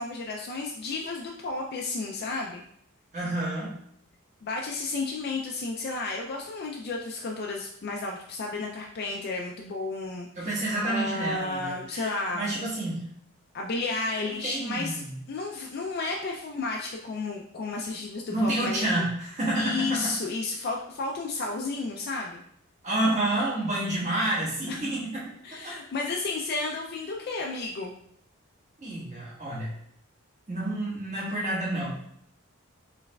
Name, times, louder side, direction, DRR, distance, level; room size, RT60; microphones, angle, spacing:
voice 1, 0.0-2.6 4.4-12.5 13.5-18.9 19.6-22.4 24.7-24.8 25.4-27.9, left 3 dB, 50° left, 0 dB, 0.3 m, -32 dB
voice 2, 3.1-3.7 10.3-13.0 14.2-15.2 18.3-20.1 22.8-25.2 25.5-25.8 28.8-29.7 30.5-32.0, right 1 dB, 35° right, -6 dB, 1.2 m, -29 dB
4.6 x 3.2 x 2.2 m, 0.71 s
head